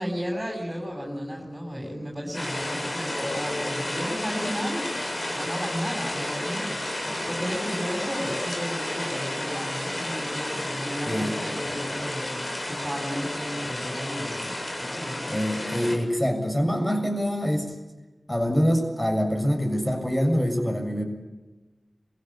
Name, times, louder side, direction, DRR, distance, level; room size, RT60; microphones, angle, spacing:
voice 1, 0.0-4.9 5.3-14.5 14.8-15.3, equal, 15° right, -2 dB, 7.1 m, -33 dB
sound 1, 2.3-15.9, left 1 dB, 45° left, 7.5 m, -31 dB
voice 2, 15.3-17.7 18.3-21.0, equal, 15° left, 4 dB, 7.1 m, -25 dB
25.5 x 16.0 x 8.7 m, 1.2 s
wide cardioid pair, 55°, 0 cm